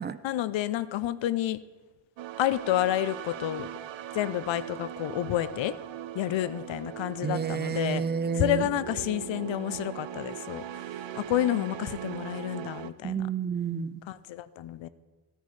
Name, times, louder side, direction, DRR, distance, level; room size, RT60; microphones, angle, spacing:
voice 1, 0.2-1.6 2.4-3.7 4.1-5.7 6.1-8.0 8.3-10.6 11.1-13.3 14.1-14.9, left 12 dB, 70° left, 15 dB, 0.6 m, -29 dB
sound 1, 2.2-12.9, right 11 dB, 70° right, 0.6 m, -40 dB
voice 2, 7.2-8.7 13.0-14.0, right 6 dB, 25° right, 14 dB, 0.3 m, -30 dB
13.5 x 13.5 x 3.2 m, 1.3 s
wide cardioid pair, 125°, 47 cm